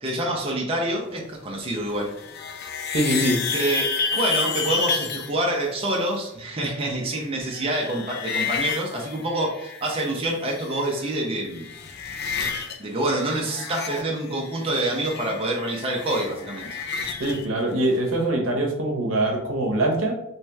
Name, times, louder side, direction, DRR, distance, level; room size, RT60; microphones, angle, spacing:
voice 1, 0.0-2.1 3.5-11.7 12.8-16.7, right 1 dB, 30° right, -1 dB, 0.7 m, -27 dB
sound 1, 1.9-5.3 6.7-10.1 10.3-11.2 11.4-12.8 13.0-17.5, left 5 dB, 55° left, 0.5 m, -30 dB
voice 2, 2.9-3.4 17.2-20.1, right 1 dB, 90° right, 2 dB, 0.8 m, -23 dB
3.1 x 3.0 x 3.4 m, 0.80 s
head